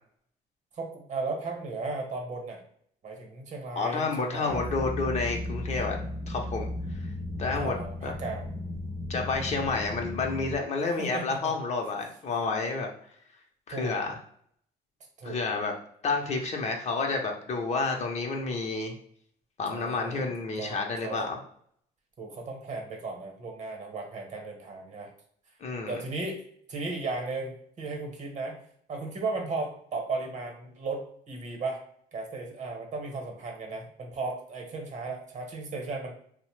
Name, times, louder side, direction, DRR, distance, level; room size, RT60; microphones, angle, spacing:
voice 1, 0.7-2.6 3.0-4.6 7.5-8.5 11.0-11.5 13.7-13.9 15.2-15.4 19.7-20.3 20.6-21.4 22.2-25.1 25.9-26.4 26.7-28.6 28.9-31.8 32.1-36.1, right 3 dB, 45° right, 2 dB, 0.9 m, -35 dB
voice 2, 3.8-6.0 6.3-6.7 7.4-7.8 8.0-8.1 9.1-12.9 13.7-14.1 15.2-15.7 16.0-18.9 19.6-21.4 25.6-26.0, left 4 dB, 40° left, 2 dB, 0.6 m, -30 dB
sound 1, 4.5-10.6, left 1 dB, 15° right, 0.6 m, -35 dB
2.7 x 2.0 x 3.1 m, 0.63 s
cardioid pair, 110°, 17 cm